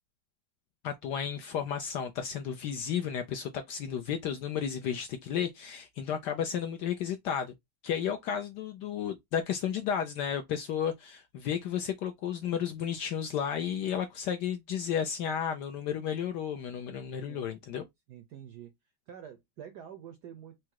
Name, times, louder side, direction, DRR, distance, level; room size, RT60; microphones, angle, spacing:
voice 1, 0.8-7.5 7.8-17.9, left 8 dB, 75° left, 0.9 m, -33 dB
voice 2, 17.2-17.5 18.1-18.7 19.1-20.7, right 9 dB, 75° right, 0.9 m, -47 dB
4.8 x 2.0 x 4.4 m
omnidirectional pair, 2.4 m